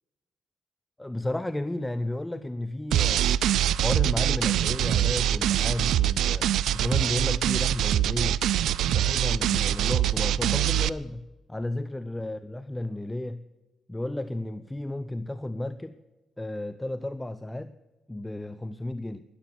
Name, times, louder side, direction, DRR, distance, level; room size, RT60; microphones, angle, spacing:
voice 1, 1.0-3.3 3.8-8.4 8.8-13.4 13.9-16.0 16.4-17.7 18.1-19.2, left 1 dB, 10° left, 0.7 m, -33 dB
sound 1, 2.9-10.9, right 12 dB, 80° right, 0.5 m, -24 dB
13.0 x 11.5 x 9.3 m
cardioid pair, 90°, 0 cm